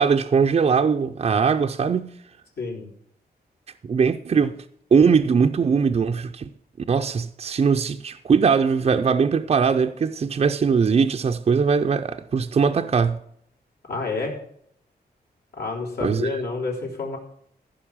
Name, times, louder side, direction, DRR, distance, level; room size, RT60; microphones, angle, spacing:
voice 1, 0.0-2.1 3.8-4.6 4.9-6.5 6.9-13.2 16.0-16.3, right 5 dB, 40° right, 0.5 m, -20 dB
voice 2, 2.6-2.9 13.9-14.4 15.6-17.2, left 3 dB, 75° left, 4.0 m, -29 dB
15.0 x 5.4 x 7.1 m
wide cardioid pair, 175°, 17 cm